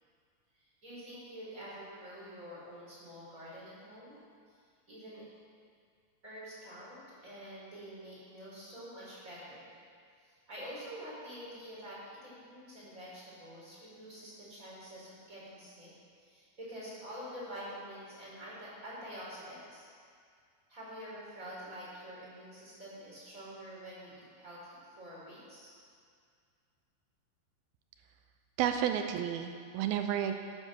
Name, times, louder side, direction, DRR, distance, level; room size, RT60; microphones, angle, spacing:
voice 1, 0.6-4.2 4.5-4.6 4.9-5.3 6.2-9.8 10.5-15.9 16.2-19.8 20.7-25.7, equal, 20° right, -8 dB, 4.4 m, -47 dB
voice 2, 28.6-30.3, right 10 dB, 85° right, 6 dB, 2.5 m, -31 dB
13.0 x 9.2 x 6.4 m, 2.2 s
omnidirectional pair, 4.3 m